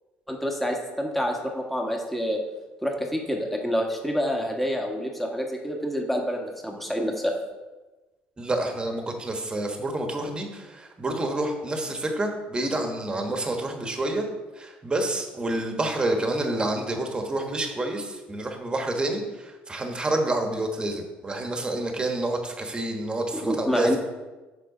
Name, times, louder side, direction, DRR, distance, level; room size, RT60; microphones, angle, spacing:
voice 1, 0.3-2.4 2.8-7.3 23.3-24.0, equal, 5° left, 1 dB, 1.5 m, -27 dB
voice 2, 8.4-14.3 14.5-24.0, right 2 dB, 20° right, 3 dB, 1.4 m, -28 dB
6.8 x 4.9 x 5.0 m, 1.2 s
supercardioid pair, 80°, 4 cm